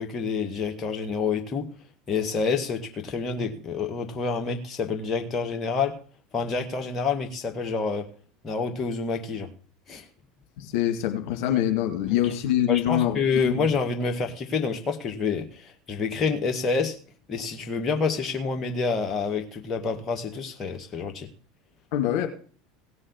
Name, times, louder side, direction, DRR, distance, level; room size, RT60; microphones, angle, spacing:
voice 1, 0.0-1.7 2.1-6.0 6.3-8.1 8.4-9.5 9.9-10.1 12.1-12.3 12.7-16.9 17.3-21.3, left 5 dB, 30° left, 3 dB, 1.8 m, -28 dB
voice 2, 10.6-13.2 13.4-13.6 21.9-22.3, left 12 dB, 55° left, 5 dB, 2.2 m, -24 dB
17.0 x 6.4 x 7.2 m, 0.42 s
figure-of-eight pair, 70°, 0 cm